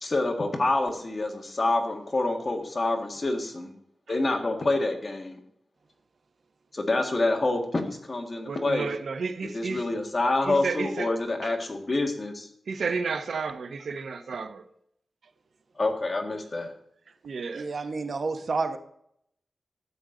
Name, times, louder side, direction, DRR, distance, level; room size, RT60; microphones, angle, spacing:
voice 1, 0.0-3.7 4.1-5.4 6.7-8.9 9.4-12.5 15.8-16.7, left 2 dB, 35° left, 1.7 m, -27 dB
voice 2, 8.5-9.8 10.5-11.1 12.7-14.6 17.2-17.7, right 4 dB, 90° right, 0.9 m, -31 dB
voice 3, 17.5-18.8, right 4 dB, 55° right, 1.0 m, -29 dB
12.5 x 8.8 x 3.8 m
wide cardioid pair, 160°, 0 cm